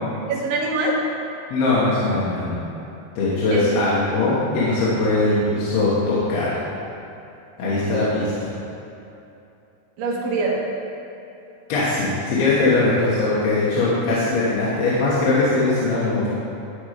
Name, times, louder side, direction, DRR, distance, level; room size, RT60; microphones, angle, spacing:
voice 1, 0.3-1.0 3.5-3.8 7.6-8.0 10.0-10.6, right 2 dB, 80° right, -2 dB, 3.2 m, -24 dB
voice 2, 1.5-2.6 3.2-6.5 7.6-8.5 11.7-16.3, left 2 dB, 75° left, -8 dB, 3.1 m, -21 dB
13.0 x 4.4 x 5.0 m, 2.8 s
omnidirectional pair, 4.7 m